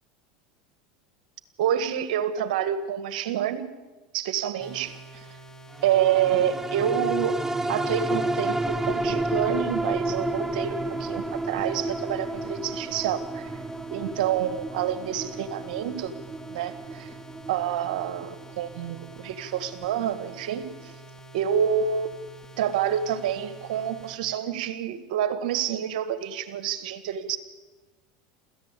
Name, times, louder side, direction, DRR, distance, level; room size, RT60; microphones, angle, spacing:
voice 1, 1.6-3.6 4.1-4.9 5.8-7.3 7.7-13.5 13.9-16.1 16.5-17.1 17.5-20.6 21.3-22.1 22.6-27.4, right 9 dB, 75° right, 11 dB, 1.7 m, -27 dB
sound 1, 4.6-24.2, right 2 dB, 15° left, 2.1 m, -47 dB
sound 2, 5.8-20.5 20.9-21.0, right 1 dB, 10° right, 0.8 m, -31 dB
27.0 x 15.0 x 8.4 m, 1.3 s
hypercardioid pair, 100°, 4 cm